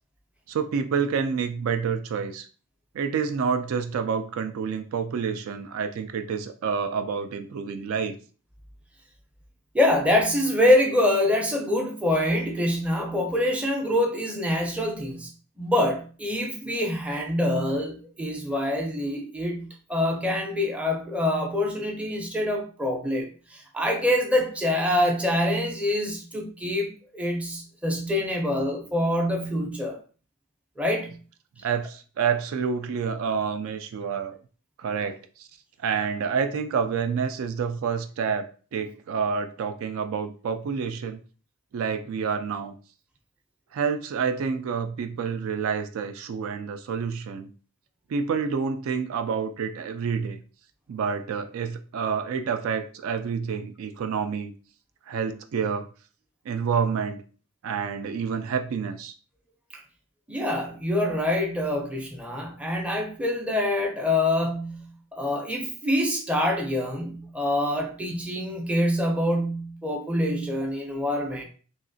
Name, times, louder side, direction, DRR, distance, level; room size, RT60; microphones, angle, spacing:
voice 1, 0.5-2.5 2.9-8.1 31.6-34.4 34.8-35.5 35.8-41.2 41.7-42.7 43.7-47.5 48.1-50.4 50.9-54.5 55.1-55.9 56.5-57.2 57.6-59.1, right 6 dB, 65° right, 7 dB, 0.3 m, -28 dB
voice 2, 9.7-15.3 15.6-30.0 30.8-31.1 60.3-71.4, left 1 dB, 5° right, 1 dB, 0.5 m, -25 dB
3.1 x 2.8 x 2.6 m, 0.39 s
head